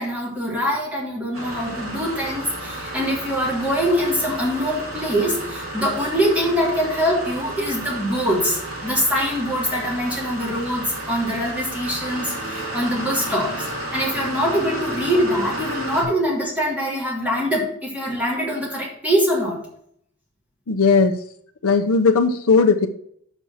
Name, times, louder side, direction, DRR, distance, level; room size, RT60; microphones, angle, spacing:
voice 1, 0.0-19.6, equal, 5° right, -5 dB, 3.2 m, -23 dB
sound 1, 1.3-16.0, right 1 dB, 65° right, 3.0 m, -32 dB
voice 2, 20.7-21.2 21.6-22.9, left 4 dB, 80° left, 4 dB, 0.7 m, -17 dB
6.2 x 5.5 x 7.0 m, 0.66 s
head